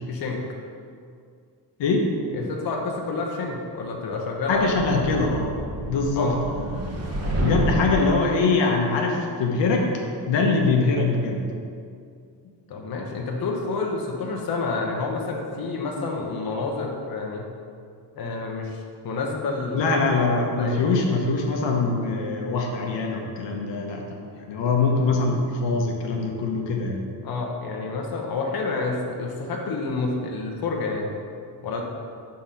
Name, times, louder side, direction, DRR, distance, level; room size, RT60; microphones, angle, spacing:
voice 1, 0.1-0.5 2.3-4.7 4.9-5.0 6.2-6.4 12.7-17.4 18.2-20.8 27.2-31.1 31.6-31.8, left 3 dB, 55° left, 0 dB, 0.9 m, -29 dB
voice 2, 1.8-2.1 4.5-5.5 5.9-6.6 7.4-9.8 10.3-11.4 19.7-24.0 24.5-27.0, left 3 dB, 90° left, 0 dB, 0.9 m, -23 dB
sound 1, 4.5-8.2, right 1 dB, 35° right, 1.0 m, -29 dB
5.8 x 3.8 x 5.6 m, 2.3 s
wide cardioid pair, 140°, 42 cm